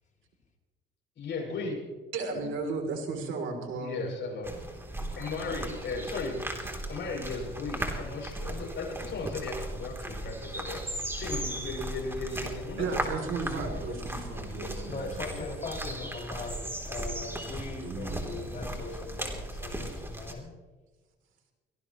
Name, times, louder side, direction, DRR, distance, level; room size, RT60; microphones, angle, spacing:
voice 1, 1.2-2.0 3.8-4.6 5.2-6.4 6.9-10.8 11.2-13.0 13.7-14.0 14.6-15.5, left 3 dB, 65° left, -1 dB, 7.1 m, -36 dB
voice 2, 2.1-4.1 12.8-15.2 17.8-18.6, right 4 dB, 80° right, 4 dB, 3.4 m, -35 dB
sound 1, 4.4-20.3, right 1 dB, 10° right, 3.3 m, -37 dB
voice 3, 14.9-20.5, left 3 dB, 40° left, 0 dB, 5.5 m, -40 dB
24.5 x 18.5 x 3.1 m, 1.3 s
cardioid pair, 90°, 20 cm